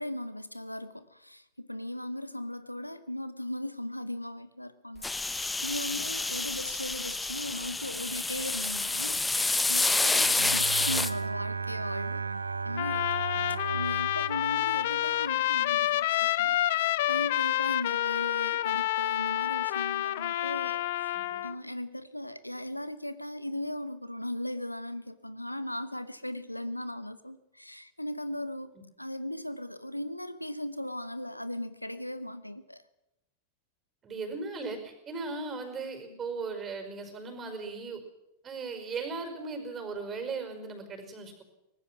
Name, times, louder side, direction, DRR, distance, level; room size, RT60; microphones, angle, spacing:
voice 1, 0.0-9.2 9.7-12.2 12.6-13.3 13.7-21.2 21.4-28.7 29.0-32.8, left 1 dB, 90° left, 15 dB, 0.9 m, -38 dB
sound 1, 5.0-11.1, left 3 dB, 10° left, 0.9 m, -28 dB
Bowed string instrument, 10.2-15.5, right 5 dB, 75° right, 0.7 m, -35 dB
Trumpet, 12.8-21.5, left 14 dB, 55° left, 0.6 m, -28 dB
voice 2, 21.1-21.4 34.0-38.0 38.4-41.4, right 4 dB, 25° right, 7 dB, 5.1 m, -38 dB
23.0 x 19.0 x 6.1 m, 0.93 s
figure-of-eight pair, 90°, 0 cm